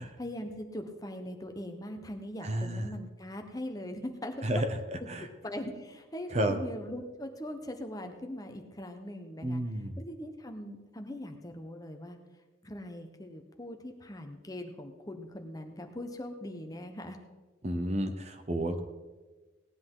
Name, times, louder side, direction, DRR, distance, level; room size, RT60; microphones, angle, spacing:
voice 1, 0.2-4.5 5.2-12.2 12.6-17.2, left 1 dB, 20° left, 5 dB, 1.0 m, -41 dB
voice 2, 2.4-2.9 4.4-4.7 5.1-5.3 6.3-6.6 9.4-10.0 17.6-18.8, right 1 dB, 35° right, 8 dB, 0.8 m, -31 dB
17.5 x 10.5 x 3.8 m, 1.2 s
head